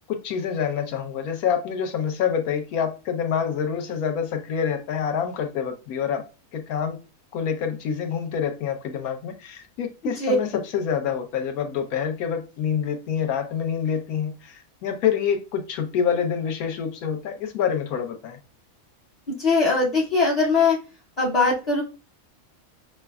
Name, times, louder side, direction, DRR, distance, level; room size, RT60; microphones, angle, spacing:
voice 1, 0.1-6.2 6.5-7.0 7.3-10.5 10.7-18.4, left 7 dB, 90° left, 1.2 m, -27 dB
voice 2, 10.0-10.4 19.3-20.8 21.2-21.8, left 3 dB, 40° left, 0.5 m, -21 dB
5.7 x 2.1 x 2.2 m
omnidirectional pair, 1.5 m